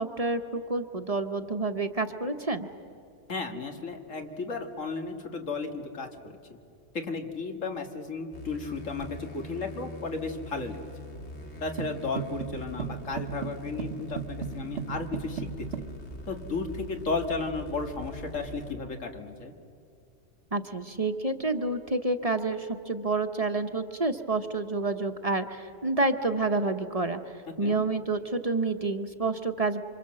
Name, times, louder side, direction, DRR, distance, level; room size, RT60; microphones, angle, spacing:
voice 1, 0.0-2.7 20.5-27.2 27.6-29.8, right 3 dB, 30° right, 7 dB, 1.0 m, -29 dB
voice 2, 3.3-6.4 6.9-10.8 11.6-15.9 16.3-19.5 27.6-27.8, left 4 dB, 85° left, 4 dB, 2.3 m, -34 dB
sound 1, 8.3-18.7, left 1 dB, 60° left, 2.6 m, -43 dB
sound 2, 11.8-16.0, right 8 dB, 65° right, 1.2 m, -37 dB
27.0 x 25.5 x 7.6 m, 2.5 s
omnidirectional pair, 1.3 m